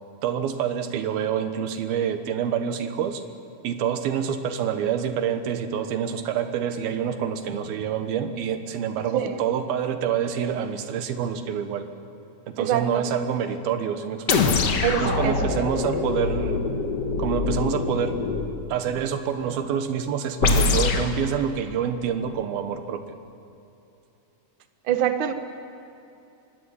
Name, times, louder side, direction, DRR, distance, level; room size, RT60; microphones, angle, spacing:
voice 1, 0.2-3.2 3.6-11.9 12.5-14.6 15.0-16.7 17.2-18.2 18.7-23.0, right 8 dB, 90° right, 8 dB, 3.2 m, -27 dB
voice 2, 12.6-13.0 14.8-15.6 24.9-25.3, right 10 dB, 70° right, 8 dB, 1.2 m, -25 dB
sound 1, 14.3-18.6 20.4-21.1, left 4 dB, 55° left, 2.1 m, -24 dB
23.5 x 17.0 x 9.9 m, 2.8 s
omnidirectional pair, 4.2 m